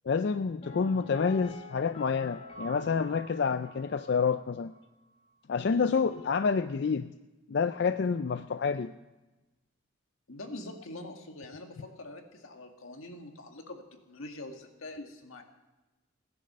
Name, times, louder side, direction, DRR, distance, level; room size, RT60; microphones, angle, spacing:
voice 1, 0.1-4.7 5.5-7.1 7.5-8.9, left 5 dB, 55° left, 10 dB, 0.4 m, -28 dB
Piano, 0.6-4.4 4.6-4.7, left 2 dB, 30° left, 4.1 m, -47 dB
voice 2, 10.3-15.4, left 2 dB, 85° left, 4 dB, 1.9 m, -44 dB
16.0 x 10.5 x 6.7 m, 1.1 s
head